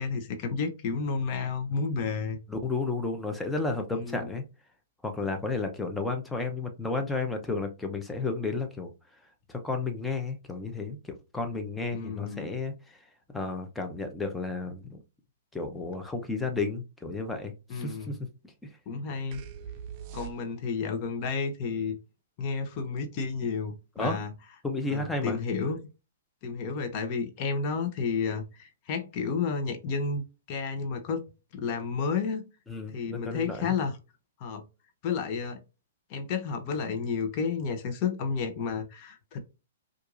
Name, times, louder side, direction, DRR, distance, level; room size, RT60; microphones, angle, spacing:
voice 1, 0.0-2.4 3.9-4.3 11.9-12.5 17.7-18.1 18.9-19.4 20.1-22.0 22.4-24.3 24.9-25.8 26.4-30.2 30.5-31.3 31.5-32.5 32.9-34.0 34.4-34.6 35.0-35.6 36.1-39.4, left 5 dB, 40° left, 0.8 m, -31 dB
voice 2, 2.5-4.4 5.0-8.9 9.5-12.7 13.3-15.0 15.5-18.2 24.0-24.2 24.6-25.4 32.7-33.7, left 3 dB, 10° left, 0.7 m, -32 dB
sound 1, 19.3-20.9, right 8 dB, 40° right, 0.6 m, -42 dB
4.5 x 2.5 x 2.5 m
hypercardioid pair, 125°, 0 cm